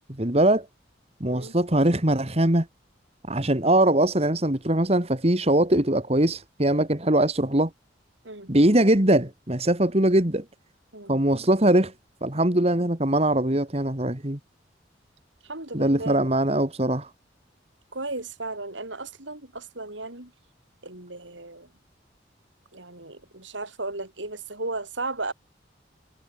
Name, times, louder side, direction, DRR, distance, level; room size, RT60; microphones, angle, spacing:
voice 1, 0.2-0.7 1.2-2.7 3.3-7.7 8.5-10.4 11.1-11.9 12.2-14.4 15.7-17.1, right 1 dB, 35° right, 2.4 m, -21 dB
voice 2, 15.4-16.3 17.9-20.3 20.8-21.7 22.7-25.3, right 2 dB, 80° right, 8.0 m, -35 dB
head